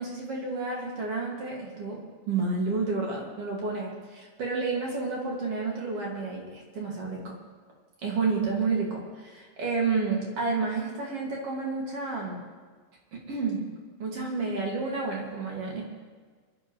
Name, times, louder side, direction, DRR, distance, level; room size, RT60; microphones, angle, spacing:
voice 1, 0.0-7.4 8.0-12.4 13.3-13.6 14.0-15.8, right 4 dB, 45° right, -2 dB, 2.5 m, -30 dB
24.5 x 11.0 x 3.1 m, 1.5 s
omnidirectional pair, 4.7 m